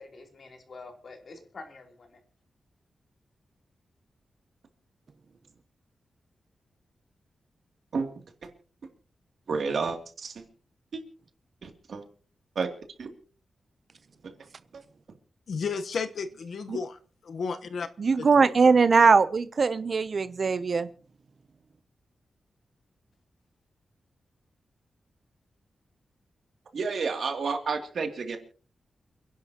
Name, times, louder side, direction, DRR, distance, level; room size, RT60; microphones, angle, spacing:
voice 1, 0.0-2.2, left 3 dB, 50° left, 3 dB, 3.1 m, -47 dB
voice 2, 9.5-10.4 10.9-11.0 11.6-12.0 12.6-12.7 13.0-13.1 26.7-28.4, right 4 dB, 65° right, 4 dB, 2.6 m, -30 dB
voice 3, 15.5-17.9 18.2-18.5, left 5 dB, 65° left, 9 dB, 1.0 m, -33 dB
voice 4, 18.0-20.9, right 4 dB, 45° right, 14 dB, 0.6 m, -21 dB
29.0 x 11.0 x 2.9 m, 0.41 s
wide cardioid pair, 150°, 0 cm